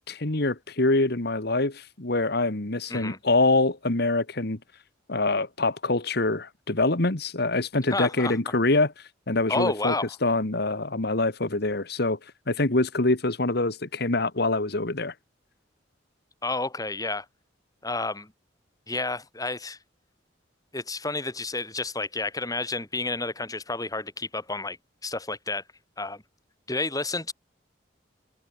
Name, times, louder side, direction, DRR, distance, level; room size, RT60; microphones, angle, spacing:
voice 1, 0.0-4.6 5.1-8.9 9.3-9.9 10.2-12.2 12.5-15.1, left 2 dB, 60° left, 2.0 m, -25 dB
voice 2, 7.9-8.4 9.5-10.2 16.4-17.2 17.8-18.3 18.9-19.8 20.7-24.8 25.0-25.6 26.0-26.2 26.7-27.3, left 3 dB, 20° left, 4.9 m, -30 dB
head